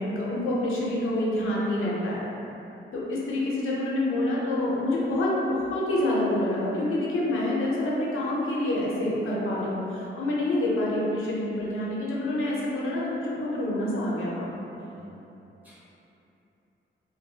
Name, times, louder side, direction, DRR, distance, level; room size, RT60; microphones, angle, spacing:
voice 1, 0.0-2.2 2.9-14.5, left 1 dB, 90° left, -6 dB, 0.6 m, -27 dB
voice 2, 14.8-15.8, right 1 dB, 10° right, -10 dB, 0.4 m, -52 dB
2.3 x 2.1 x 2.7 m, 2.9 s
wide cardioid pair, 165°, 21 cm